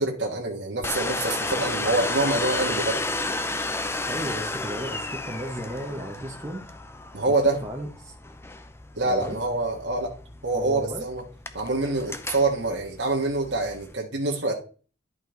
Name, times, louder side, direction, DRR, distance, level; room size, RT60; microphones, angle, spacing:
voice 1, 0.0-3.0 7.1-7.6 8.9-10.1 10.4-11.2 11.5-14.5, right 2 dB, 85° right, -1 dB, 1.5 m, -26 dB
Domestic sounds home sounds, 0.8-13.9, left 2 dB, 15° left, 0.6 m, -32 dB
voice 2, 4.1-6.6 7.3-8.1 9.0-9.4 10.5-11.1, right 1 dB, 15° right, -2 dB, 1.0 m, -34 dB
11.0 x 5.3 x 3.9 m, 0.39 s
head